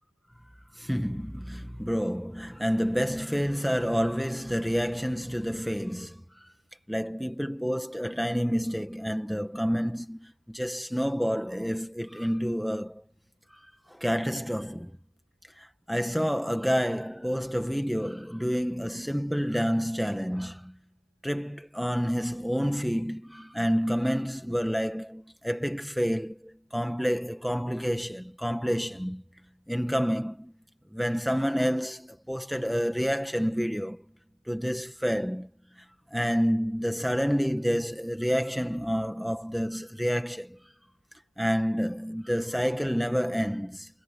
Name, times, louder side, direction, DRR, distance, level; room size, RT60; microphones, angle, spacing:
voice 1, 0.8-6.2 6.9-13.0 13.9-14.9 15.6-20.7 21.2-29.2 29.7-30.5 30.9-34.0 34.5-35.5 36.1-40.6 41.4-43.9, equal, ahead, 1.4 m, -29 dB
head